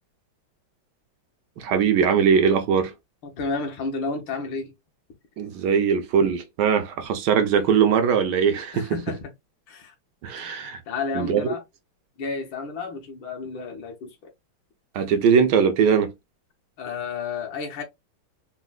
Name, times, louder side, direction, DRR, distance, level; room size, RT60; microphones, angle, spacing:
voice 1, 1.6-2.9 5.4-9.0 10.2-10.8 11.1-11.5 14.9-16.1, right 7 dB, 75° right, 1.0 m, -21 dB
voice 2, 3.2-4.7 8.7-9.3 9.7-9.9 10.9-11.6 12.2-14.3 16.8-17.8, left 4 dB, 70° left, 1.5 m, -31 dB
4.1 x 2.1 x 2.2 m
omnidirectional pair, 2.2 m